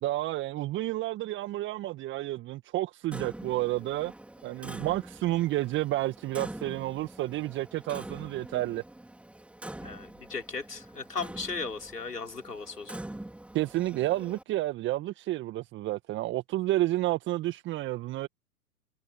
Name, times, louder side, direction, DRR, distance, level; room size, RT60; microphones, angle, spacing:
voice 1, 0.0-4.1 4.4-8.8 13.5-18.3, right 16 dB, 25° right, 1.8 m, -30 dB
Clock, 3.1-14.4, right 1 dB, 5° right, 4.8 m, -45 dB
voice 2, 9.8-13.0, left 4 dB, 85° left, 4.9 m, -37 dB
figure-of-eight pair, 110°, 46 cm